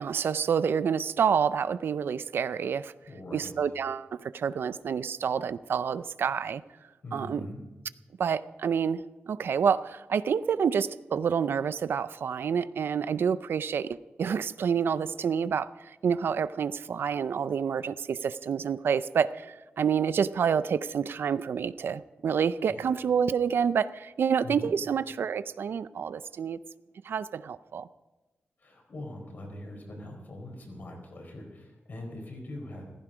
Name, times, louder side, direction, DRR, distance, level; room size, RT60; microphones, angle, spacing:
voice 1, 0.0-2.9 3.3-6.6 7.1-7.4 8.2-15.7 16.0-26.6 27.0-27.9, right 7 dB, 70° right, 15 dB, 0.4 m, -28 dB
voice 2, 3.1-3.5 7.0-7.6 22.7-23.0 24.4-24.7 28.6-32.8, left 1 dB, 50° left, 2 dB, 4.2 m, -42 dB
15.5 x 15.0 x 5.0 m, 1.1 s
wide cardioid pair, 175°, 4 cm